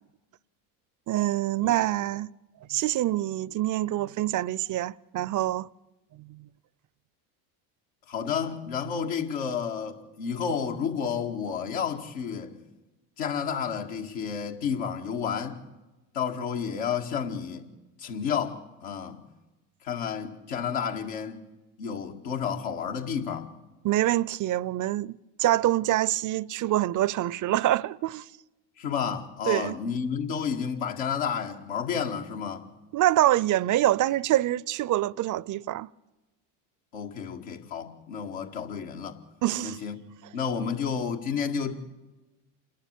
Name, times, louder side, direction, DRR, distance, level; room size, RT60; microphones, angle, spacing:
voice 1, 1.1-2.3 2.7-5.7 6.1-6.5 23.8-28.3 29.5-29.8 32.9-35.9 39.4-39.8, right 14 dB, 40° right, 0.6 m, -25 dB
voice 2, 8.1-12.5 13.2-15.6 16.1-17.7 18.0-19.2 19.8-21.4 21.8-23.5 28.8-32.7 36.9-39.2 39.6-40.0 40.3-41.9, left 7 dB, 75° left, 2.1 m, -31 dB
28.0 x 11.5 x 8.3 m
hypercardioid pair, 75°, 46 cm